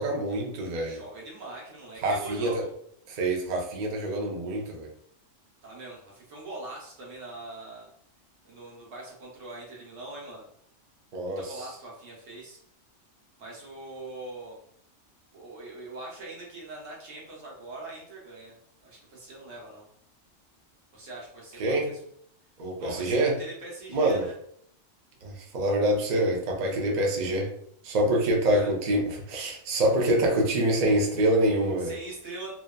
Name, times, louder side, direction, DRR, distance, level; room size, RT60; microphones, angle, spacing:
voice 1, 0.0-1.0 2.0-2.6 3.1-4.9 11.1-11.4 21.6-21.9 22.6-23.4 23.9-24.2 25.2-27.5 27.8-31.9, right 1 dB, 55° right, 1 dB, 0.4 m, -25 dB
voice 2, 0.8-2.7 5.6-7.9 8.4-10.5 11.4-12.6 13.4-14.6 15.3-18.5 18.8-19.9 20.9-22.0 22.8-24.4 28.5-28.7 31.8-32.5, right 2 dB, 80° right, -3 dB, 1.3 m, -42 dB
2.7 x 2.3 x 2.2 m, 0.65 s
omnidirectional pair, 1.3 m